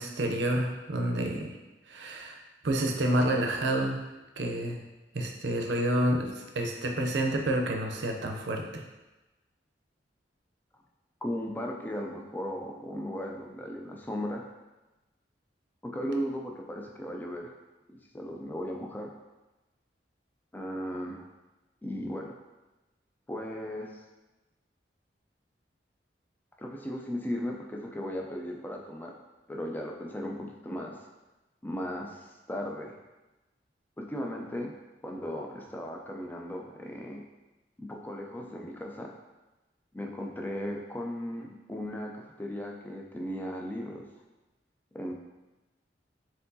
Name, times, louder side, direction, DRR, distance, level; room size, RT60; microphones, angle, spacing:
voice 1, 0.0-1.6 1.9-2.4 2.6-4.1 4.4-4.8 5.1-8.8, right 1 dB, 80° right, 2 dB, 0.6 m, -29 dB
voice 2, 11.2-14.4 15.8-17.6 17.9-19.1 20.5-21.3 21.8-22.3 23.3-24.0 26.6-29.1 29.5-30.9 31.6-32.9 34.0-34.7 35.0-37.2 37.8-39.1 39.9-44.1 44.9-45.1, equal, 10° left, 0 dB, 0.4 m, -36 dB
4.5 x 3.7 x 2.7 m, 1.1 s
head